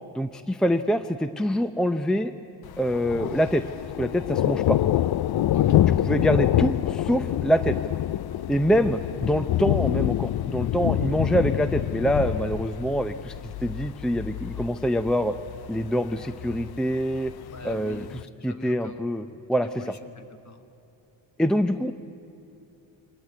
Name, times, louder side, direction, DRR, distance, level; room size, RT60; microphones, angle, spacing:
voice 1, 0.1-2.3 2.8-3.6 4.0-4.8 5.7-7.8 8.5-15.3 15.7-17.3 17.6-18.0 18.4-19.2 19.5-19.9 21.4-21.9, equal, ahead, 10 dB, 0.6 m, -25 dB
Thunder, 2.6-18.2, left 13 dB, 55° left, 0.5 m, -26 dB
voice 2, 5.5-6.0 17.5-19.1 19.6-20.6, left 4 dB, 35° left, 8 dB, 1.8 m, -42 dB
24.0 x 19.0 x 9.5 m, 2.9 s
cardioid pair, 90°, 47 cm